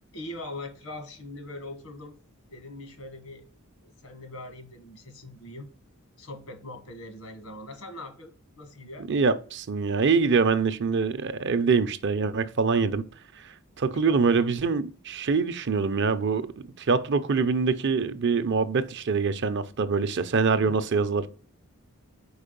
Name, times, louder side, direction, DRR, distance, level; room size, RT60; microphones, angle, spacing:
voice 1, 0.1-2.1 2.5-3.4 3.8-5.7 6.2-9.1 13.9-14.2 20.5-20.8, left 1 dB, 80° left, 1.5 m, -41 dB
voice 2, 9.1-13.1 13.8-16.5 16.8-21.3, right 5 dB, 55° right, 0.6 m, -24 dB
4.8 x 4.6 x 5.1 m
head